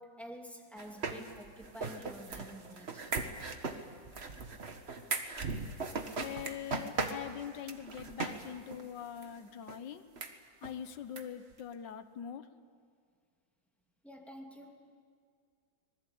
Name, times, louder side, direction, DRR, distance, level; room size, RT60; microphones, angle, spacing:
voice 1, 0.0-3.2 14.0-15.0, equal, ahead, 1 dB, 2.5 m, -49 dB
sound 1, 0.8-8.5 8.7-8.8 9.2-9.3 9.7-9.8 10.2-10.3 10.6-10.7 11.2-11.3 11.5-11.6, right 4 dB, 40° right, 1.5 m, -38 dB
voice 2, 6.1-10.0 10.6-12.5, left 9 dB, 75° left, 10 dB, 1.6 m, -43 dB
26.0 x 20.0 x 8.6 m, 2.1 s
omnidirectional pair, 2.0 m